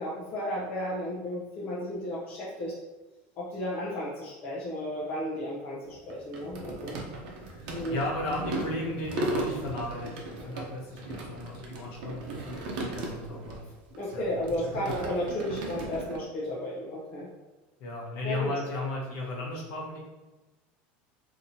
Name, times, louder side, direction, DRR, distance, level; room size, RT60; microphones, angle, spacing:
voice 1, 0.0-2.7 3.4-6.9 7.7-8.0 14.0-17.3 18.2-18.5, equal, 35° left, -7 dB, 0.6 m, -33 dB
sound 1, 5.8-13.6 13.9-16.2, right 2 dB, 75° right, 0.8 m, -36 dB
voice 2, 7.5-13.7 14.1-14.5 17.8-20.0, left 2 dB, 50° left, -2 dB, 1.0 m, -35 dB
4.0 x 2.8 x 2.7 m, 1.2 s
cardioid pair, 170°, 5 cm